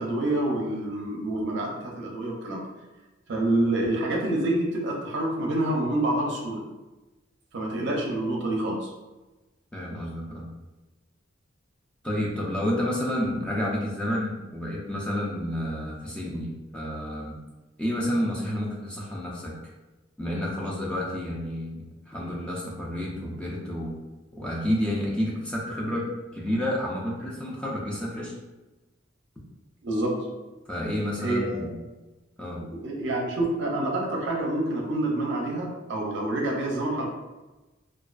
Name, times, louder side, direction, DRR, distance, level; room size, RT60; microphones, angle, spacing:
voice 1, 0.0-2.6 3.3-6.6 7.5-8.9 29.8-30.1 31.2-31.7 32.6-37.1, right 1 dB, 60° right, -1 dB, 0.5 m, -27 dB
voice 2, 9.7-10.5 12.0-17.4 17.8-19.5 20.2-24.0 24.4-28.3 30.7-31.7 32.4-32.6, equal, 5° left, -5 dB, 0.3 m, -30 dB
2.3 x 2.2 x 2.3 m, 1.1 s
head